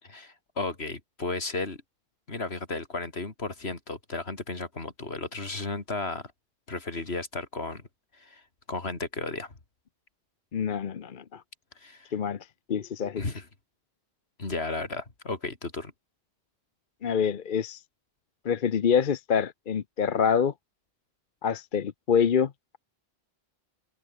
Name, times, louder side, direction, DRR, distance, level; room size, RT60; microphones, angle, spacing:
voice 1, 0.0-1.8 2.3-6.3 6.7-7.8 8.1-8.4 8.7-9.5 11.8-12.1 13.2-13.5 14.4-15.9, left 3 dB, 75° left, 3.3 m, -34 dB
voice 2, 10.5-11.4 12.1-12.4 12.7-13.2 17.0-17.8 18.4-20.5 21.4-22.8, left 7 dB, 55° left, 0.9 m, -26 dB
omnidirectional pair, 1.1 m